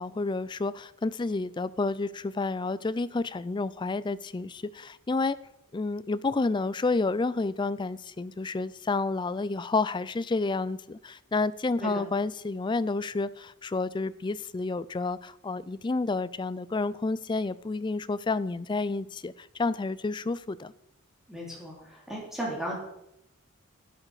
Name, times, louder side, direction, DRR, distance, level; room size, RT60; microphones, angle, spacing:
voice 1, 0.0-5.4 5.7-20.7, left 3 dB, 20° left, 0.3 m, -30 dB
voice 2, 21.3-22.7, right 1 dB, ahead, 3.1 m, -35 dB
11.0 x 9.8 x 4.8 m
head